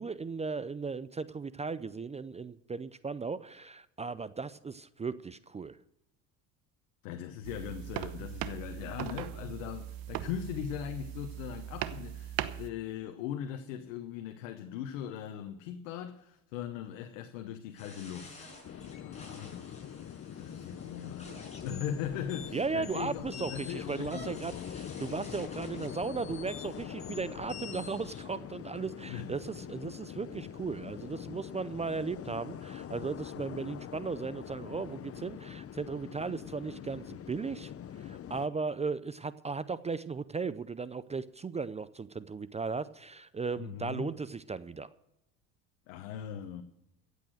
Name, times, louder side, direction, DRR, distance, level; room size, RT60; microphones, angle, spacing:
voice 1, 0.0-5.8 22.5-37.7 38.0-44.9, right 4 dB, 15° right, 0.5 m, -36 dB
voice 2, 7.0-18.5 19.0-19.8 20.4-24.7 29.1-29.3 43.6-44.2 45.9-46.6, left 9 dB, 85° left, 1.1 m, -40 dB
sound 1, 7.4-12.7, right 12 dB, 60° right, 1.0 m, -39 dB
sound 2, 17.8-28.2, left 4 dB, 15° left, 6.2 m, -49 dB
sound 3, 18.6-38.5, left 9 dB, 35° left, 0.8 m, -44 dB
15.5 x 8.3 x 6.4 m
supercardioid pair, 85°, 39 cm